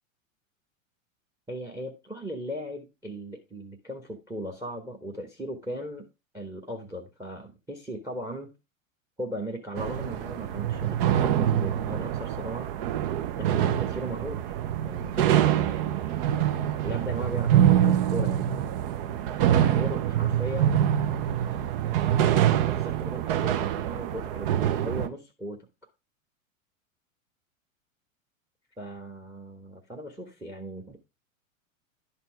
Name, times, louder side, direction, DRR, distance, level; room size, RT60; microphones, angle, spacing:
voice 1, 1.5-6.1 6.3-8.5 9.2-12.7 13.3-14.5 14.8-16.3 16.8-18.8 19.5-20.8 21.5-25.7 28.8-31.0, right 1 dB, 5° right, 8 dB, 1.1 m, -37 dB
sound 1, 9.7-25.1, right 10 dB, 45° right, 0.7 m, -25 dB
11.0 x 4.4 x 4.6 m, 0.26 s
figure-of-eight pair, 95°, 40 cm